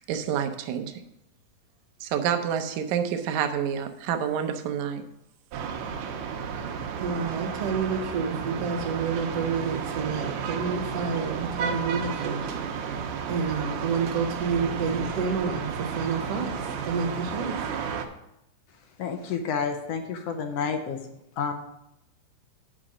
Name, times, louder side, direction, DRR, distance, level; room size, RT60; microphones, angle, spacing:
voice 1, 0.1-1.0 2.0-5.0, right 8 dB, 75° right, 7 dB, 2.0 m, -28 dB
sound 1, 5.5-18.1, right 6 dB, 90° right, 2.5 m, -32 dB
voice 2, 7.0-12.4 13.3-17.6, right 5 dB, 60° right, 1 dB, 1.9 m, -29 dB
voice 3, 19.0-21.0 21.4-21.5, left 6 dB, 75° left, 6 dB, 1.4 m, -29 dB
8.8 x 5.2 x 6.1 m, 0.82 s
omnidirectional pair, 3.7 m